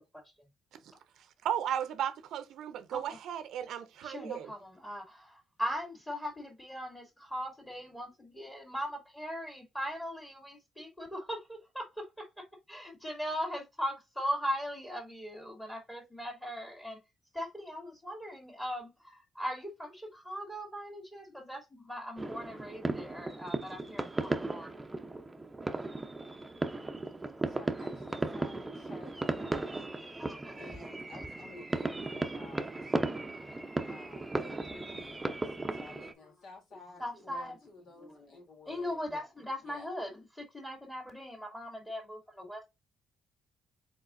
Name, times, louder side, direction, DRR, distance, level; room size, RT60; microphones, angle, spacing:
voice 1, 1.4-4.5, right 10 dB, 80° right, 0.6 m, -35 dB
voice 2, 4.0-17.0 17.3-24.9 27.2-27.6 28.3-28.9 30.2-30.9 31.6-31.7 33.3-34.4 37.0-37.6 38.0-38.4 38.7-42.7, equal, 15° left, 2.1 m, -40 dB
sound 1, 22.2-36.1, right 2 dB, 15° right, 0.6 m, -36 dB
voice 3, 27.2-29.9 30.5-33.0 33.9-39.0 39.6-39.9, left 2 dB, 75° left, 2.7 m, -53 dB
4.6 x 3.9 x 2.5 m
cardioid pair, 90°, 0 cm